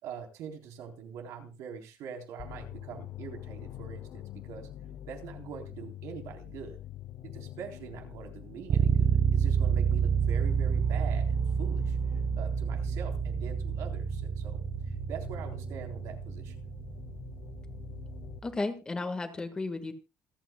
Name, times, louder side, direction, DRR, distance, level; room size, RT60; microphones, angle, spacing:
voice 1, 0.0-4.7 5.0-6.8 7.3-12.0 12.4-16.6, right 7 dB, 75° right, 4 dB, 3.7 m, -44 dB
sound 1, 2.4-18.4, left 12 dB, 50° left, 1.0 m, -45 dB
sound 2, 8.7-18.4, right 7 dB, 40° right, 0.8 m, -29 dB
voice 2, 18.4-19.9, left 3 dB, 15° left, 7 dB, 1.6 m, -33 dB
27.5 x 9.2 x 2.3 m, 0.29 s
cardioid pair, 175°, 5 cm